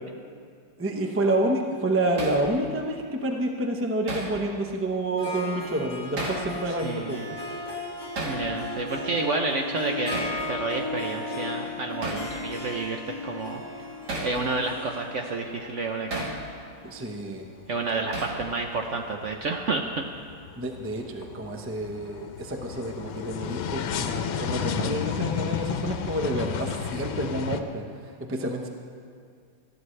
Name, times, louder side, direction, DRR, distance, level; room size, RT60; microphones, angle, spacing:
voice 1, 0.8-7.4 16.8-17.5 20.6-27.8 28.3-28.7, right 1 dB, 20° right, 2 dB, 0.3 m, -29 dB
Hammer, 2.2-2.4 4.1-4.4 6.2-6.5 8.2-8.4 10.1-10.4 12.0-12.3 14.1-14.4 16.1-16.4 18.1-18.4, right 1 dB, 55° right, 2.2 m, -32 dB
Harp, 5.2-18.7, left 2 dB, 30° left, 2.1 m, -36 dB
voice 2, 6.7-7.2 8.2-13.6 14.2-16.3 17.7-20.0, right 3 dB, 75° right, 3 dB, 0.6 m, -30 dB
sound 1, 17.5-18.1 18.4-27.6, left 7 dB, 90° left, 1.5 m, -32 dB
18.5 x 13.5 x 3.3 m, 2.2 s
omnidirectional pair, 2.2 m